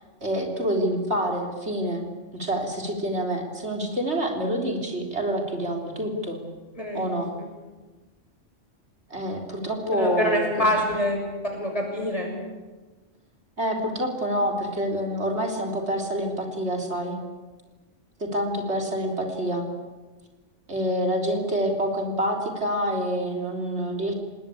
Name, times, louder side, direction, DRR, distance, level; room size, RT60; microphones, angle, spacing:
voice 1, 0.2-2.0 2.3-6.4 6.9-7.3 9.1-10.9 13.6-17.2 18.2-19.7 20.7-24.1, equal, 60° right, 1 dB, 4.0 m, -27 dB
voice 2, 6.7-7.1 9.9-12.3, left 1 dB, 30° left, 1 dB, 6.8 m, -25 dB
28.0 x 20.0 x 8.6 m, 1.3 s
omnidirectional pair, 1.3 m